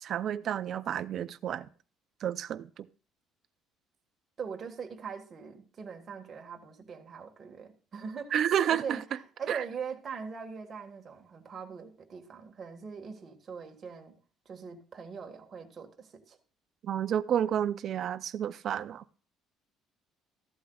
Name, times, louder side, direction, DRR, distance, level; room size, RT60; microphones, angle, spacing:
voice 1, 0.0-1.7 2.2-2.9 8.3-9.0 9.5-9.6 16.8-19.2, right 9 dB, 45° right, 0.5 m, -30 dB
voice 2, 4.4-14.2 14.5-16.4, right 6 dB, 30° right, 1.6 m, -42 dB
14.0 x 12.0 x 2.3 m
cardioid pair, 150°, 0 cm